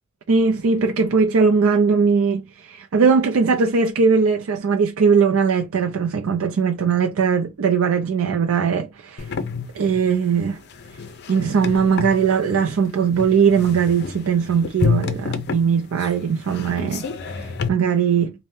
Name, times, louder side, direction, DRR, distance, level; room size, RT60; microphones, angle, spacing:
voice 1, 0.3-9.3 9.7-10.6 11.3-18.3, right 5 dB, 75° right, 0.4 m, -19 dB
sound 1, 9.2-17.7, left 4 dB, 50° left, 0.5 m, -29 dB
2.6 x 2.1 x 3.4 m
head